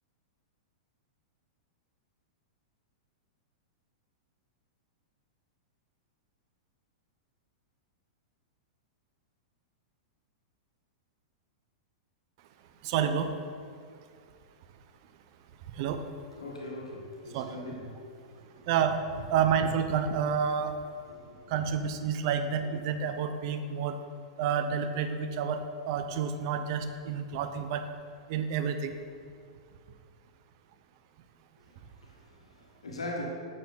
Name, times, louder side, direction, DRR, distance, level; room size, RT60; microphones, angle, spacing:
voice 1, 12.8-13.3 15.7-16.0 17.3-17.6 18.7-20.8 21.5-24.0 24.4-27.9 28.3-28.9, right 7 dB, 50° right, 0.7 m, -29 dB
voice 2, 16.4-18.7 21.1-21.4 32.0-33.2, left 2 dB, 85° left, 1.6 m, -41 dB
8.5 x 6.5 x 3.9 m
hypercardioid pair, 105°, 3 cm